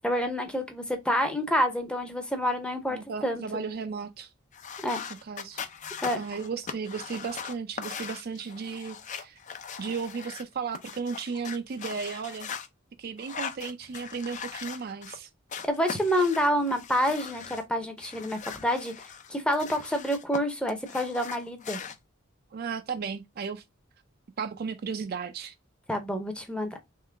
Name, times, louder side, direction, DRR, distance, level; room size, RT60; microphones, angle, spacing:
voice 1, 0.0-3.4 4.8-5.0 6.0-6.2 15.7-18.9 19.3-21.8 25.9-26.7, equal, 5° left, 0.7 m, -28 dB
voice 2, 2.9-4.3 5.2-5.7 6.2-9.4 9.8-12.5 13.0-15.3 22.5-23.6 24.4-25.5, right 5 dB, 45° right, 0.4 m, -35 dB
sound 1, 4.5-10.4 10.7-12.7 13.2-15.2 15.5-17.6 18.0-20.4 20.7-22.0, left 6 dB, 35° left, 0.4 m, -40 dB
3.7 x 3.2 x 3.3 m
head